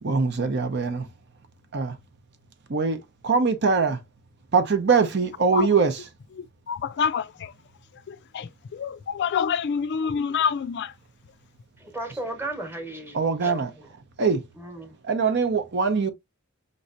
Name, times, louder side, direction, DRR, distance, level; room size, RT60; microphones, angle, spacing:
voice 1, 0.0-1.1 1.7-2.0 2.7-3.0 3.2-4.0 4.5-6.0 13.1-13.7 14.2-14.4 15.0-16.1, right 5 dB, 55° right, 0.7 m, -22 dB
voice 2, 6.4-7.5 7.9-10.9, left 7 dB, 50° left, 0.3 m, -27 dB
voice 3, 11.8-13.7 14.6-15.0, right 1 dB, 10° right, 1.1 m, -35 dB
5.4 x 3.1 x 2.5 m
head